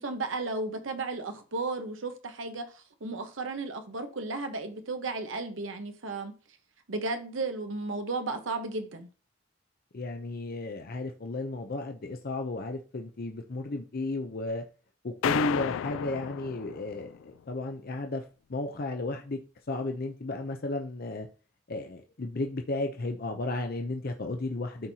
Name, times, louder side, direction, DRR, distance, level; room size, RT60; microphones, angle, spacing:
voice 1, 0.0-6.3 6.9-9.1, right 3 dB, 80° right, 1.1 m, -34 dB
voice 2, 9.9-14.6 15.0-18.2 18.5-19.4 19.7-21.3 21.7-24.9, left 2 dB, 50° left, 0.7 m, -34 dB
sound 1, 15.2-17.2, left 9 dB, 85° left, 0.3 m, -32 dB
12.5 x 4.5 x 2.8 m
head